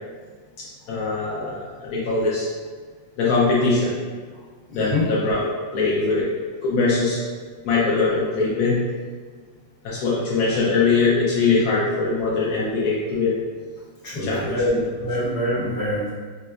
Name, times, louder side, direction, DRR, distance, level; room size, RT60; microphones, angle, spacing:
voice 1, 0.6-2.5 3.2-4.0 4.7-6.3 6.6-7.2 7.6-8.8 9.8-13.4 14.2-14.8, left 3 dB, 70° left, -6 dB, 0.9 m, -22 dB
voice 2, 4.8-5.1 14.0-16.1, left 1 dB, 50° left, -9 dB, 1.5 m, -24 dB
5.2 x 2.1 x 2.3 m, 1.5 s
omnidirectional pair, 2.1 m